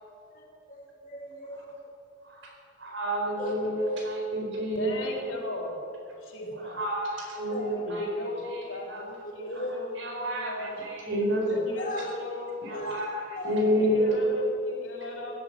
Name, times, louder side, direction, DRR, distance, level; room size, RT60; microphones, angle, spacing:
voice 1, 0.3-1.7 3.4-3.5 3.8-4.0 6.4-6.6 7.5-7.8 9.2-9.7 11.8-12.0 12.7-13.0 13.3-13.6, left 1 dB, 40° left, 0 dB, 3.4 m, -37 dB
voice 2, 2.2-5.0 6.5-8.0 8.5-9.1 9.5-9.6 10.0-11.5 12.6-14.2, equal, 70° right, 0 dB, 4.3 m, -30 dB
voice 3, 4.8-5.8 6.2-6.8 7.8-10.8 11.5-12.9 13.8-15.4, left 2 dB, 85° left, -1 dB, 3.6 m, -37 dB
17.0 x 11.0 x 7.6 m, 2.7 s
head